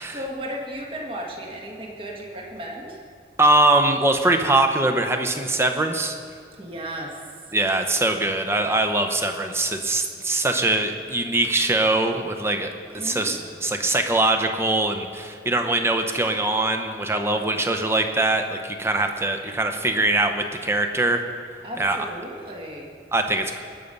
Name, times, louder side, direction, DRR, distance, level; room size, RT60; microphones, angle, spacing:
voice 1, 0.0-3.0 6.6-7.5 13.0-13.6 21.6-22.9, equal, 30° right, -1 dB, 1.6 m, -35 dB
voice 2, 3.4-6.2 7.5-21.2 21.8-22.0 23.1-23.6, right 2 dB, 15° right, 5 dB, 0.7 m, -22 dB
20.0 x 6.8 x 5.3 m, 2.2 s
head